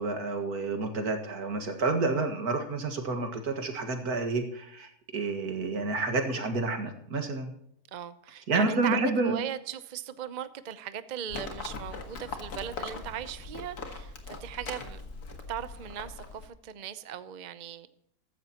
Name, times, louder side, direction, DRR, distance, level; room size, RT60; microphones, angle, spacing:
voice 1, 0.0-7.5 8.5-9.4, right 3 dB, 85° right, 5 dB, 2.3 m, -29 dB
voice 2, 7.9-17.9, right 9 dB, 40° right, 12 dB, 0.6 m, -38 dB
Livestock farm animals working animals, 11.3-16.5, left 3 dB, 85° left, 2.2 m, -40 dB
15.0 x 14.0 x 2.9 m, 0.74 s
omnidirectional pair, 1.6 m